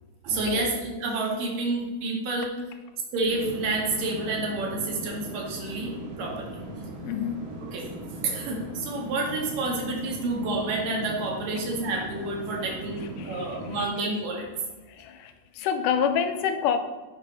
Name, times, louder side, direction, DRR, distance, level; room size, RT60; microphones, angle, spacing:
voice 1, 0.2-2.5 3.1-5.9 6.2-6.5 7.7-7.9 8.2-14.5, right 2 dB, 80° right, -2 dB, 3.5 m, -29 dB
sound 1, 3.3-13.9, right 1 dB, 40° right, 1.4 m, -39 dB
voice 2, 7.0-7.5 13.0-13.9 14.9-16.8, left 8 dB, 85° left, 8 dB, 2.1 m, -28 dB
10.5 x 7.3 x 4.0 m, 1.2 s
omnidirectional pair, 3.8 m